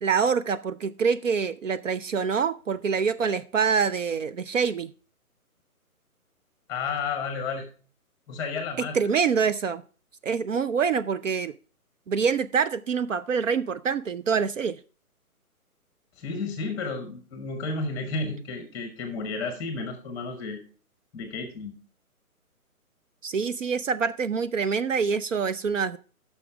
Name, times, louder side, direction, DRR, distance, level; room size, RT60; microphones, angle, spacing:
voice 1, 0.0-4.9 8.9-9.8 10.2-11.5 12.1-14.8 23.2-26.0, right 6 dB, 60° right, 13 dB, 0.5 m, -25 dB
voice 2, 6.7-7.7 8.3-9.0 16.2-20.6 21.1-21.7, left 4 dB, 10° left, 7 dB, 0.9 m, -32 dB
9.7 x 6.3 x 4.8 m, 0.40 s
figure-of-eight pair, 145°, 44 cm